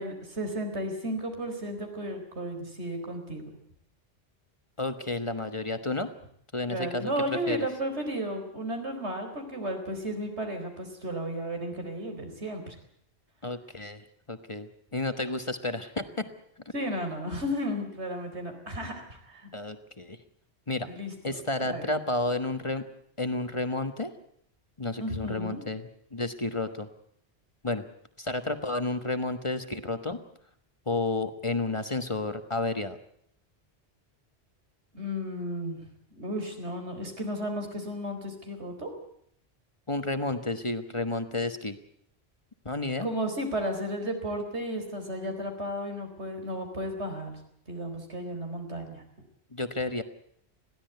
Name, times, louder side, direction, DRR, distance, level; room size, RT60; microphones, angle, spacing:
voice 1, 0.0-3.5 6.7-12.8 16.7-19.5 20.8-21.9 25.0-25.6 34.9-35.8 36.2-38.9 43.0-47.4 47.7-49.0, equal, 90° right, 5 dB, 4.6 m, -34 dB
voice 2, 4.8-6.1 6.5-7.6 13.4-16.3 19.5-20.2 20.7-20.9 21.2-22.9 23.2-24.1 24.8-26.9 27.6-27.8 28.2-30.2 30.9-33.0 39.9-41.8 42.6-43.1 49.5-50.0, left 2 dB, 30° left, 9 dB, 1.3 m, -31 dB
21.5 x 16.0 x 9.3 m, 0.69 s
omnidirectional pair, 1.1 m